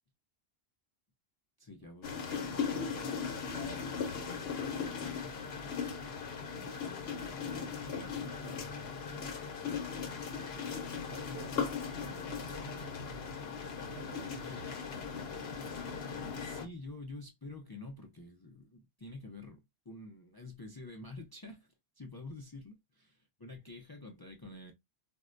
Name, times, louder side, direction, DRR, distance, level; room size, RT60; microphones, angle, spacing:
voice 1, 1.6-3.2 14.5-14.9 16.4-21.7 22.0-24.7, left 2 dB, 35° left, 0.4 m, -48 dB
sound 1, 2.0-16.7, left 6 dB, 75° left, 0.9 m, -38 dB
voice 2, 2.5-5.6 6.5-8.6 9.0-9.4 10.3-11.6 11.9-13.5 13.9-15.0, right 4 dB, 80° right, 1.0 m, -54 dB
4.3 x 2.1 x 2.5 m
omnidirectional pair, 1.1 m